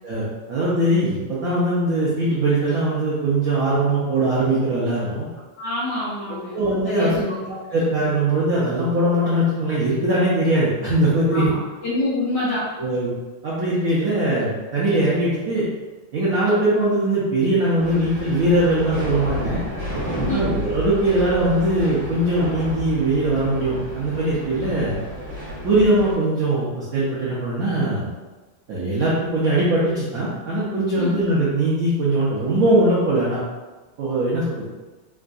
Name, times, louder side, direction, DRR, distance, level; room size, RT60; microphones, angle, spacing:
voice 1, 0.0-5.3 6.5-7.3 7.7-11.5 12.8-13.1 13.4-15.7 16.1-19.6 20.3-25.0 25.6-28.1 28.7-33.4 34.0-34.5, right 1 dB, 80° right, -8 dB, 0.7 m, -21 dB
voice 2, 5.6-7.5 11.3-12.7 20.3-20.5 31.0-31.1, left 2 dB, 80° left, -7 dB, 0.9 m, -27 dB
sound 1, 17.8-26.2, left 1 dB, 60° right, 1.8 m, -31 dB
3.7 x 2.3 x 2.5 m, 1.2 s
omnidirectional pair, 2.4 m